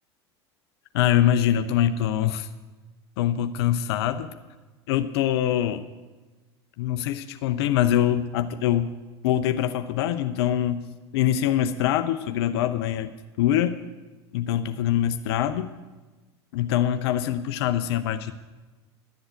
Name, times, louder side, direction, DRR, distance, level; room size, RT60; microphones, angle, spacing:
voice 1, 0.9-2.5 3.2-4.3 4.9-5.9 6.8-8.9 9.2-10.8 11.1-13.1 13.4-13.8 14.3-15.7 16.5-18.3, left 11 dB, 65° left, 10 dB, 0.6 m, -24 dB
11.5 x 7.9 x 7.7 m, 1.2 s
hypercardioid pair, 80°, 14 cm